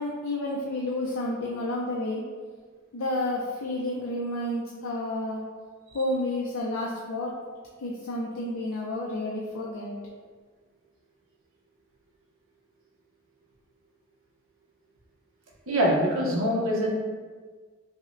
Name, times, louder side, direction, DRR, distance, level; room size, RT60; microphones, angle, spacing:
voice 1, 0.0-2.2 2.9-5.4 5.9-7.3 7.8-9.9, left 1 dB, 80° left, -3 dB, 0.4 m, -30 dB
voice 2, 15.7-16.9, equal, 75° right, -3 dB, 0.8 m, -24 dB
5.3 x 2.1 x 2.5 m, 1.5 s
head